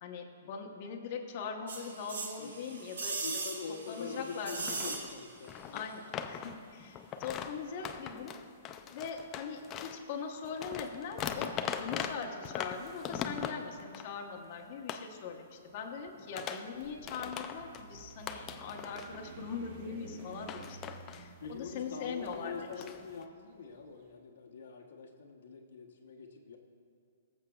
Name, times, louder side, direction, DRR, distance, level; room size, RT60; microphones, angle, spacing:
voice 1, 0.0-3.4 3.9-5.0 5.7-8.3 8.9-20.8 21.1-22.8, left 5 dB, 40° left, 1 dB, 1.0 m, -41 dB
sound 1, 1.7-5.5 5.7-5.8, right 3 dB, 85° right, 1.6 m, -39 dB
voice 2, 3.2-5.9 21.4-26.6, left 5 dB, 75° left, 0 dB, 1.0 m, -44 dB
sound 2, 4.3-4.4 4.7-10.0 10.4-14.2 14.9-15.1 16.1-16.8 17.1-17.9 18.2-19.4 19.7-20.2 20.5-21.5 22.2-23.2, left 8 dB, 20° left, 0.4 m, -41 dB
sound 3, 16.7-23.9, right 4 dB, 45° right, 0.9 m, -52 dB
20.5 x 7.2 x 2.4 m, 2.3 s
hypercardioid pair, 155°, 0 cm